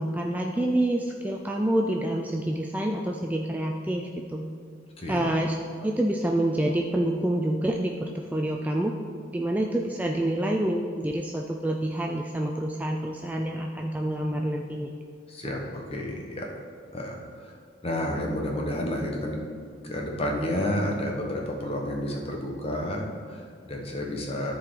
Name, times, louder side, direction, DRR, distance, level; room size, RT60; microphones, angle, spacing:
voice 1, 0.0-4.5 5.1-8.9 9.3-14.9, right 1 dB, 10° right, 1 dB, 0.4 m, -27 dB
voice 2, 5.0-5.3 15.3-16.5 16.9-17.5 17.8-19.4 19.8-24.5, left 1 dB, 30° left, 0 dB, 1.2 m, -30 dB
13.5 x 4.7 x 3.9 m, 2.2 s
head